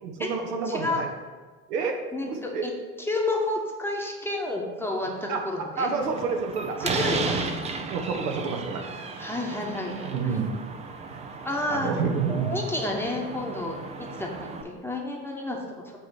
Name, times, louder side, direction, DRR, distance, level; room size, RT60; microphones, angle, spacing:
voice 1, 0.0-1.1 1.7-2.0 2.3-2.6 5.3-5.4 5.8-7.2 7.9-8.9 9.2-9.3 10.0-10.5 11.1-11.2 11.7-12.5, right 5 dB, 70° right, 3 dB, 1.1 m, -29 dB
voice 2, 0.6-1.0 2.1-2.7 3.0-5.9 6.8-7.4 9.2-10.3 11.4-13.8 14.2-16.0, left 2 dB, 5° left, -1 dB, 1.1 m, -30 dB
Slam, 6.0-14.6, right 4 dB, 15° right, 0.4 m, -35 dB
8.1 x 3.1 x 6.2 m, 1.4 s
hypercardioid pair, 80°, 49 cm